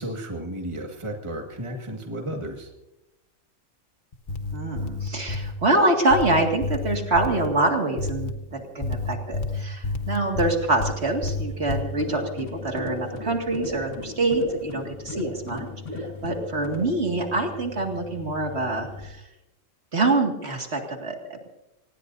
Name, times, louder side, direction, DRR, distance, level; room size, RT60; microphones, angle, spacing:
voice 1, 0.0-2.7, right 1 dB, 25° right, 2 dB, 1.8 m, -33 dB
sound 1, 4.1-5.6 6.1-7.5 8.0-8.3 8.8-10.9 11.2-11.8, left 3 dB, 40° left, 1.3 m, -29 dB
voice 2, 4.5-15.7 16.0-19.2 19.9-21.5, right 2 dB, 55° right, 2 dB, 2.4 m, -25 dB
sound 2, 10.1-19.1, left 5 dB, 20° left, 4.8 m, -42 dB
sound 3, 11.9-17.0, left 2 dB, 65° left, 1.8 m, -37 dB
25.5 x 19.5 x 2.7 m, 0.93 s
omnidirectional pair, 1.3 m